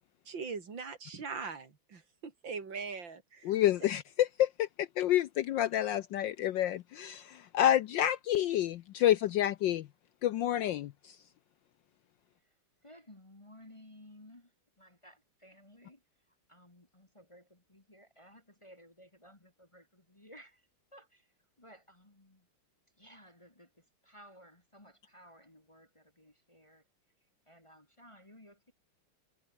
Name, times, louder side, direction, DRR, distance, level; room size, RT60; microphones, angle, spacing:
voice 1, 0.2-3.5, right 5 dB, 60° right, 3.5 m, -41 dB
voice 2, 3.4-9.9 10.2-11.2, left 12 dB, 70° left, 1.2 m, -29 dB
voice 3, 12.8-14.5 14.8-16.0 16.5-20.6 20.9-21.3 21.6-22.5 23.0-23.7 24.0-26.8 27.5-28.7, equal, 15° left, 1.8 m, -57 dB
omnidirectional pair, 2.4 m